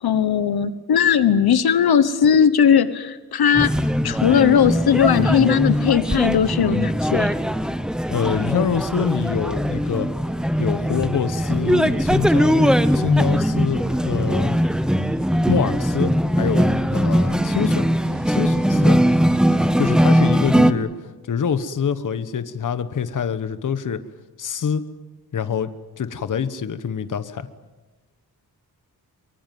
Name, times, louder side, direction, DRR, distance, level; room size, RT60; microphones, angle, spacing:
voice 1, 0.0-3.7 4.0-7.4, left 8 dB, 75° left, 14 dB, 1.2 m, -18 dB
sound 1, 3.5-20.7, equal, ahead, 0.9 m, -20 dB
voice 2, 8.1-10.1 10.6-14.6 15.5-17.9 18.3-19.0 19.8-20.9 21.3-24.0 24.4-24.8 25.3-25.7 26.0-27.5, left 7 dB, 55° left, 12 dB, 1.2 m, -25 dB
sound 2, 16.3-21.6, right 6 dB, 85° right, 3.3 m, -43 dB
24.5 x 23.0 x 9.3 m, 1.2 s
wide cardioid pair, 160°, 38 cm